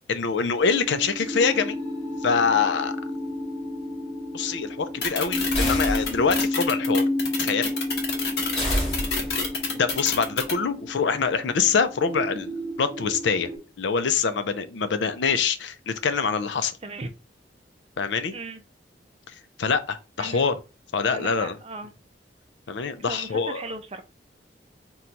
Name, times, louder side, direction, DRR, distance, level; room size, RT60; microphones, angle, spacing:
voice 1, 0.1-1.8 2.2-3.0 4.3-7.1 7.4-7.7 9.7-13.5 13.8-16.7 18.0-18.3 19.3-20.5 20.9-21.6 22.7-23.6, left 5 dB, 80° left, 0.5 m, -25 dB
sound 1, 0.6-13.6, left 1 dB, ahead, 1.7 m, -31 dB
sound 2, 5.0-10.5, left 4 dB, 60° left, 1.0 m, -28 dB
sound 3, 5.5-6.5 8.5-9.6, equal, 30° left, 2.4 m, -28 dB
voice 2, 21.1-21.9 23.0-24.0, right 3 dB, 35° right, 0.4 m, -37 dB
4.4 x 2.3 x 3.9 m
head